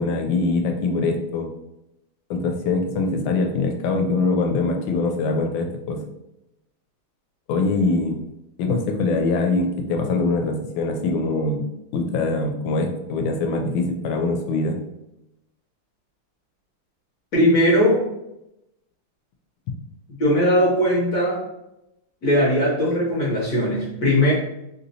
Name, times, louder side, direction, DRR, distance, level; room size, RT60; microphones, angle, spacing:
voice 1, 0.0-1.5 2.3-6.0 7.5-8.2 8.6-11.6 11.9-14.8, left 3 dB, 75° left, 3 dB, 1.3 m, -23 dB
voice 2, 17.3-18.1 20.2-21.4 22.2-24.3, equal, 60° left, -5 dB, 1.1 m, -19 dB
3.3 x 2.8 x 2.6 m, 0.88 s
omnidirectional pair, 2.3 m